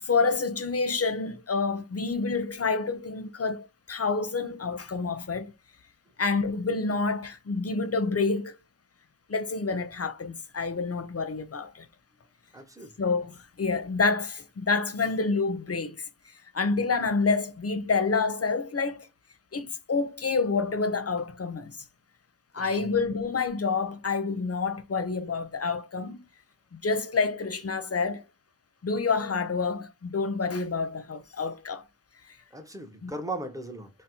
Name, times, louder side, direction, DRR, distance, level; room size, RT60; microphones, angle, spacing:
voice 1, 0.0-5.5 6.2-8.6 9.3-11.9 13.0-16.1 16.5-19.1 19.5-21.7 22.5-26.2 26.8-28.2 28.8-31.9 33.0-33.1, left 4 dB, 40° left, 0.5 m, -28 dB
voice 2, 12.5-12.9 22.6-22.9 32.5-33.9, right 2 dB, 10° right, 0.6 m, -38 dB
4.1 x 2.0 x 2.6 m
wide cardioid pair, 50°, 39 cm